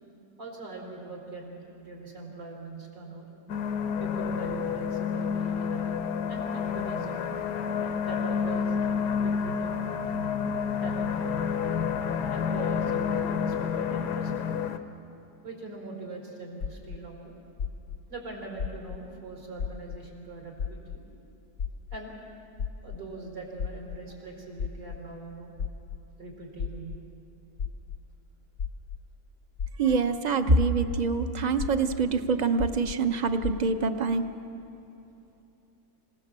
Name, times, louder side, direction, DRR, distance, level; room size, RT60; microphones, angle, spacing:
voice 1, 0.4-3.3 4.0-6.0 6.3-7.3 8.0-8.9 9.2-9.8 10.8-11.5 12.3-14.5 15.4-17.4 18.1-21.0 21.9-22.2 22.8-25.5 26.2-26.9, right 3 dB, 80° right, -1 dB, 5.0 m, -42 dB
sound 1, 3.5-14.8, left 6 dB, 75° left, 1.5 m, -29 dB
sound 2, 16.6-17.0 17.6-18.0 18.6-19.0 19.6-20.0 20.6-21.0 21.6-22.0 22.6-23.0 23.6-24.0 24.6-25.0 25.6-26.0 26.6-27.0 27.6-28.0 28.6-29.0 29.6-30.0 30.6-31.0 31.6-32.0 32.6-32.9 33.4-33.5, left 7 dB, 60° left, 1.1 m, -32 dB
voice 2, 29.8-34.3, right 4 dB, 40° right, 8 dB, 0.6 m, -25 dB
27.0 x 18.0 x 7.5 m, 2.8 s
omnidirectional pair, 1.9 m